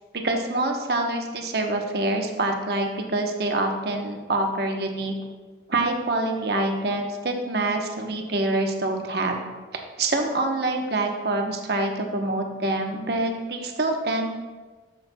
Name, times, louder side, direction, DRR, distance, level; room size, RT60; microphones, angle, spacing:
voice 1, 0.1-5.1 5.7-9.4 10.0-14.3, right 2 dB, 60° right, 3 dB, 1.0 m, -26 dB
11.5 x 7.6 x 2.3 m, 1.3 s
head